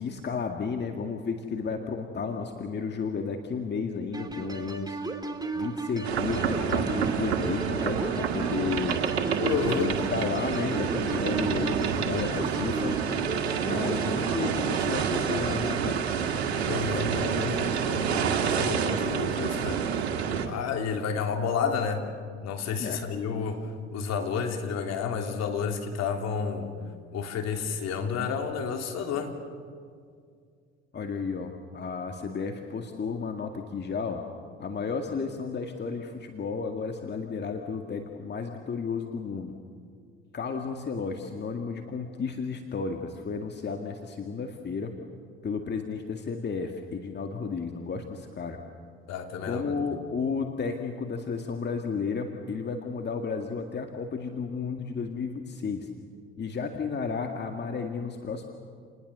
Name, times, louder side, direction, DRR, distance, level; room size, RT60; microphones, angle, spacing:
voice 1, 0.0-5.0 5.5-9.0 9.7-13.0 13.6-16.0 22.8-23.1 30.9-34.2 34.6-39.5 40.3-45.0 45.4-48.6 49.4-55.9 56.4-58.5, left 5 dB, 35° left, 4 dB, 2.1 m, -33 dB
sound 1, 4.1-15.8, right 3 dB, 10° right, 2.8 m, -35 dB
sound 2, 6.0-20.5, right 7 dB, 85° right, 1.8 m, -28 dB
voice 2, 9.4-10.0 16.6-19.8 20.4-22.1 22.4-26.7 27.1-29.3 49.1-49.8, left 6 dB, 55° left, 4 dB, 3.2 m, -31 dB
29.5 x 20.0 x 6.9 m, 2.1 s
hypercardioid pair, 60°, 31 cm